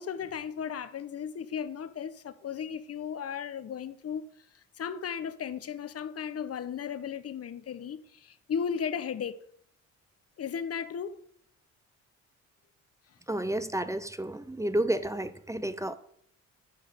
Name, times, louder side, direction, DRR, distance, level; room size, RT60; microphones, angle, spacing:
voice 1, 0.0-4.2 4.5-9.4 10.4-11.2, left 7 dB, 50° left, 1.1 m, -35 dB
voice 2, 13.3-16.0, right 1 dB, 10° right, 0.8 m, -31 dB
9.5 x 6.2 x 7.5 m
supercardioid pair, 65°, 32 cm